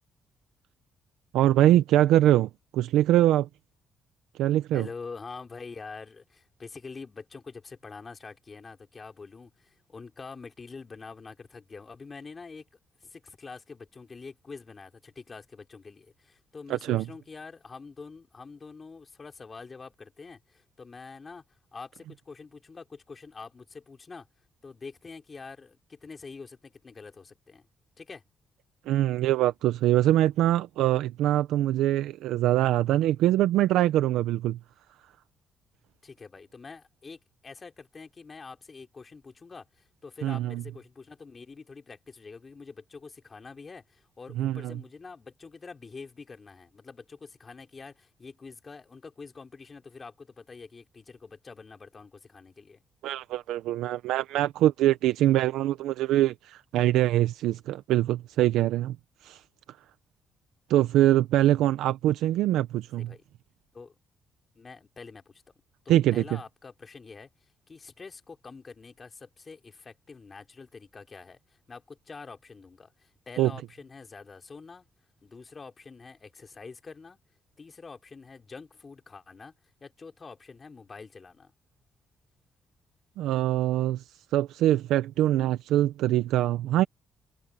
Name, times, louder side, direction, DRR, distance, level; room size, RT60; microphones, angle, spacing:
voice 1, 1.3-3.5 4.4-4.9 16.7-17.0 28.9-34.6 40.2-40.6 44.4-44.8 53.0-59.0 59.2-59.4 60.7-63.1 65.9-66.2 73.4-73.5 83.2-84.0 84.3-86.8, right 13 dB, 90° right, 0.6 m, -23 dB
voice 2, 4.7-12.6 13.0-21.4 21.7-24.3 24.6-27.7 28.0-28.2 36.0-52.8 61.3-61.7 63.0-63.2 63.7-64.0 64.6-65.4 65.8-67.3 67.7-74.9 75.2-77.2 77.6-79.5 79.8-81.5, left 4 dB, 35° left, 3.8 m, -45 dB
cardioid pair, 90°, 0 cm